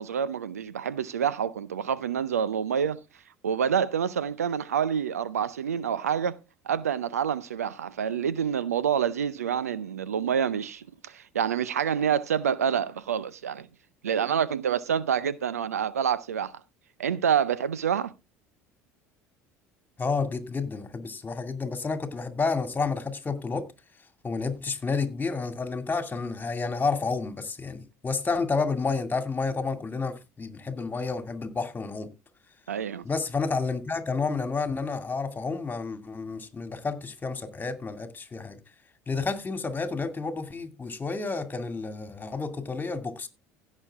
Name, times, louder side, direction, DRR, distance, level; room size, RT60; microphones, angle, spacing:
voice 1, 0.0-3.0 3.4-6.4 6.6-13.7 14.0-16.5 17.0-18.1 32.7-33.0, right 8 dB, 85° right, 0.6 m, -27 dB
voice 2, 20.0-23.7 24.2-32.1 33.0-38.6 39.1-43.3, left 4 dB, 20° left, 2.4 m, -30 dB
16.0 x 6.4 x 3.6 m
hypercardioid pair, 65°, 8 cm